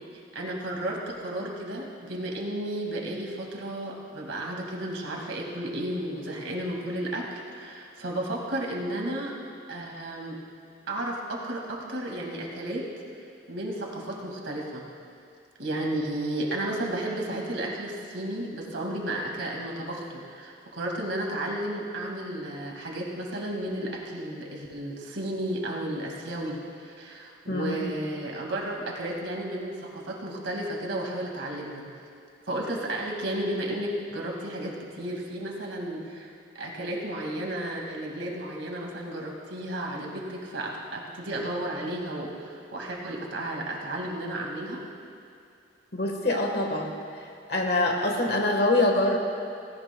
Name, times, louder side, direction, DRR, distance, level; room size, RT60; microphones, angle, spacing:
voice 1, 0.3-9.3 9.7-10.4 10.9-12.8 13.5-14.8 15.6-31.9 32.5-36.3 36.5-44.8, right 1 dB, 85° right, -1 dB, 2.1 m, -33 dB
voice 2, 27.5-27.8 45.9-46.9 47.5-49.2, left 2 dB, 55° left, 2 dB, 1.4 m, -24 dB
18.0 x 16.5 x 2.3 m, 2.4 s
head